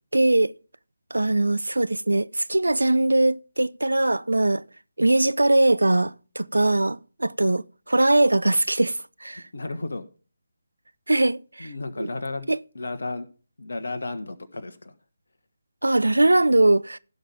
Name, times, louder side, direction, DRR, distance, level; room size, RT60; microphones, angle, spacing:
voice 1, 0.1-0.5 1.1-4.6 5.0-9.4 11.1-11.7 12.0-12.1 12.5-12.6 15.8-17.0, right 2 dB, 75° right, 0.4 m, -21 dB
voice 2, 9.5-10.0 11.6-12.5 12.7-13.3 13.6-14.9, left 2 dB, 60° left, 1.4 m, -33 dB
16.5 x 5.7 x 3.5 m
figure-of-eight pair, 150°, 0 cm